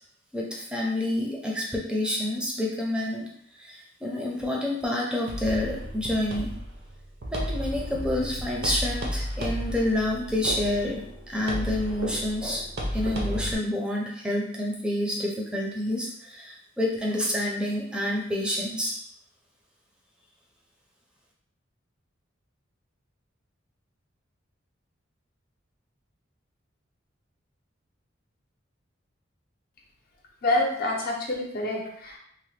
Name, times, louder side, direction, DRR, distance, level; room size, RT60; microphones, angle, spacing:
voice 1, 0.3-3.3 3.6-6.5 7.3-12.6 12.9-18.9, left 1 dB, 5° right, -3 dB, 0.5 m, -28 dB
sound 1, 5.3-13.5, equal, 55° right, 0.6 m, -33 dB
voice 2, 30.4-32.2, left 2 dB, 50° left, 0 dB, 0.6 m, -27 dB
3.2 x 2.1 x 3.2 m, 0.69 s
head